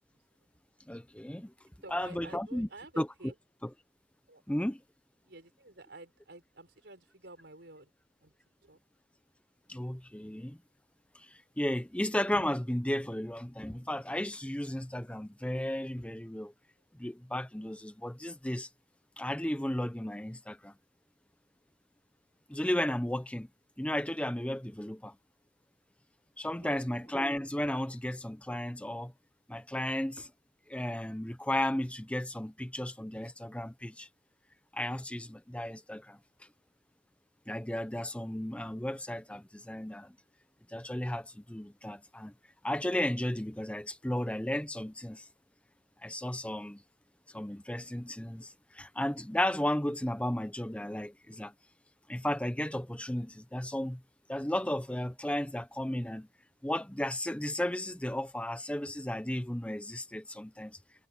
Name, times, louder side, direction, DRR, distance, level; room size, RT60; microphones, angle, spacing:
voice 1, 0.9-1.5 1.9-2.7 3.0-3.1 3.6-3.7 4.5-4.8 9.7-10.6 11.1-16.5 17.0-18.7 19.2-20.7 22.5-23.5 23.8-25.1 26.4-29.1 29.5-30.3 30.7-34.1 34.7-36.2 37.5-40.1 40.7-42.3 42.6-45.3 46.0-46.8 47.3-51.5 52.1-54.0 54.3-56.3 56.6-60.8, left 1 dB, 5° left, 0.7 m, -34 dB
voice 2, 1.8-3.4 4.3-4.4 5.2-7.9 8.2-8.4 8.6-8.8 26.5-27.2, right 2 dB, 70° right, 5.5 m, -51 dB
head